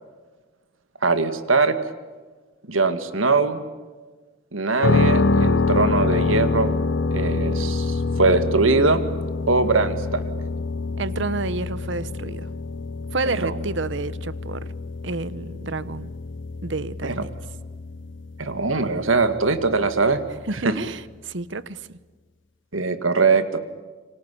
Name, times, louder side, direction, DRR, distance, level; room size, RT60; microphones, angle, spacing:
voice 1, 1.0-1.8 2.7-3.6 4.5-6.7 7.1-9.0 9.5-10.2 13.3-13.6 17.0-17.1 18.4-20.2 20.6-20.7 22.7-23.6, right 3 dB, 80° right, 10 dB, 2.2 m, -21 dB
sound 1, 4.8-20.7, left 3 dB, 65° left, 0.9 m, -26 dB
voice 2, 11.0-12.5 13.1-14.7 15.0-16.1 16.6-17.3 20.5-22.0, right 3 dB, 60° right, 17 dB, 1.0 m, -30 dB
28.0 x 25.0 x 8.5 m, 1.4 s
head